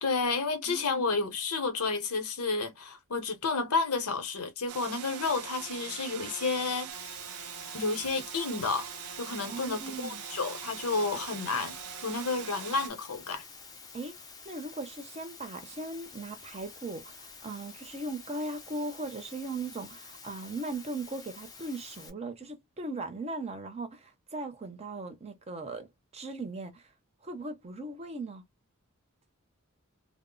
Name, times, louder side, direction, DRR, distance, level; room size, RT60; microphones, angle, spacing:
voice 1, 0.0-6.9 7.7-8.9 9.2-11.8 12.0-13.4, left 4 dB, 90° left, 0.8 m, -31 dB
voice 2, 0.7-1.0 9.5-10.2 13.9-14.2 14.4-25.9 26.1-26.8 27.2-28.4, right 2 dB, 30° right, 0.6 m, -38 dB
sound 1, 4.7-12.9, right 9 dB, 85° right, 0.5 m, -42 dB
Water, 6.9-22.1, left 4 dB, 15° left, 0.5 m, -49 dB
2.0 x 2.0 x 3.7 m
head